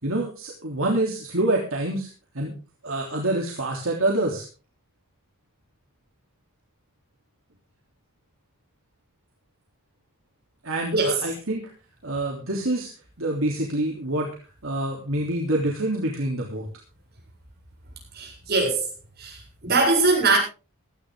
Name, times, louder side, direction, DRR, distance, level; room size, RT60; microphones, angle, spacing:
voice 1, 0.0-2.1 2.3-2.5 2.8-4.4 10.6-11.7 12.0-12.9 13.2-14.3 14.6-16.7, right 1 dB, 65° right, -1 dB, 3.2 m, -26 dB
voice 2, 18.1-18.9 19.2-20.4, right 3 dB, 45° right, -1 dB, 7.9 m, -22 dB
17.0 x 13.5 x 3.8 m, 0.35 s
head